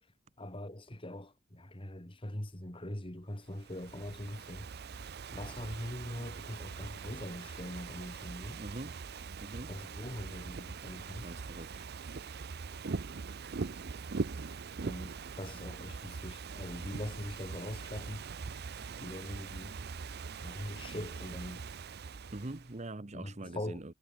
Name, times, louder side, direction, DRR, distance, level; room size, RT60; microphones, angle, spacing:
voice 1, 0.4-4.7 5.3-8.6 9.7-11.3 14.5-18.2 19.0-19.7 20.4-21.6 23.1-23.8, left 1 dB, 25° left, 2.4 m, -42 dB
Ocean / Fireworks, 3.5-22.8, right 4 dB, 50° right, 0.6 m, -42 dB
voice 2, 8.6-9.0 9.4-9.7 11.1-11.9 22.3-23.9, right 2 dB, 30° right, 1.0 m, -44 dB
head